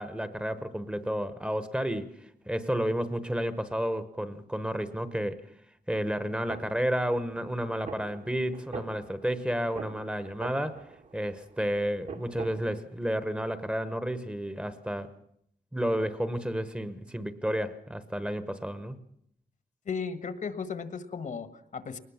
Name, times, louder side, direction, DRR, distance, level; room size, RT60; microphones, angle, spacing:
voice 1, 0.0-2.1 2.5-5.4 5.9-10.8 11.1-15.1 15.7-19.0, equal, 5° right, 12 dB, 1.1 m, -31 dB
sound 1, 6.3-12.8, right 4 dB, 60° right, 2.2 m, -44 dB
voice 2, 19.8-22.0, left 5 dB, 60° left, 12 dB, 1.5 m, -35 dB
22.0 x 19.5 x 7.3 m, 0.72 s
wide cardioid pair, 170°, 15 cm